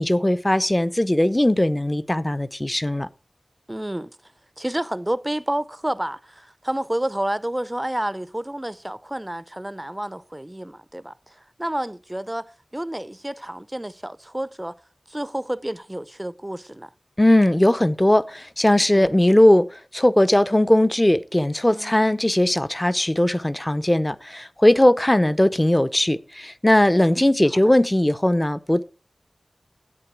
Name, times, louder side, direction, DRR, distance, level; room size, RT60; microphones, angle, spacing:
voice 1, 0.0-3.1 17.2-28.8, left 1 dB, 20° left, 0.6 m, -19 dB
voice 2, 3.7-4.2 4.6-14.7 15.1-16.9 18.9-19.1 21.7-22.0 27.0-27.3, right 1 dB, 20° right, 0.6 m, -30 dB
11.0 x 8.4 x 4.7 m
cardioid pair, 40°, 0 cm